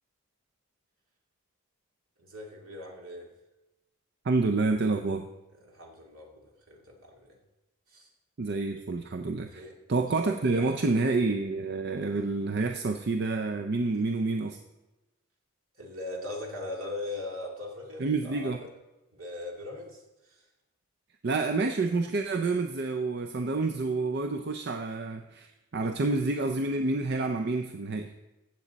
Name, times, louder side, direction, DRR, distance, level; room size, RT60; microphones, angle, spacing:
voice 1, 2.2-3.3 5.6-7.3 7.9-8.1 9.5-9.7 10.1-10.8 15.8-18.7 19.1-20.4, left 2 dB, 70° right, -1 dB, 2.3 m, -40 dB
voice 2, 4.2-5.3 8.4-9.6 9.9-14.6 18.0-18.6 21.2-28.1, right 3 dB, 50° right, 6 dB, 0.5 m, -28 dB
15.0 x 7.6 x 4.0 m, 1.0 s
head